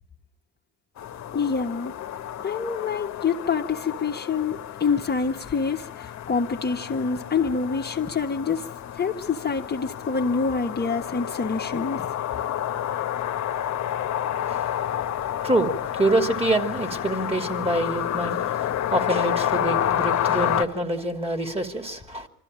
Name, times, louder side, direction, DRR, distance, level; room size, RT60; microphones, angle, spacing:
sound 1, 1.0-20.7, left 10 dB, 50° left, 1.3 m, -30 dB
voice 1, 1.3-1.9 2.4-8.7 8.9-12.1, left 5 dB, 30° left, 1.4 m, -26 dB
voice 2, 14.5-14.8 15.4-22.3, right 1 dB, 15° right, 2.8 m, -26 dB
25.0 x 14.0 x 8.8 m
hypercardioid pair, 65°, 35 cm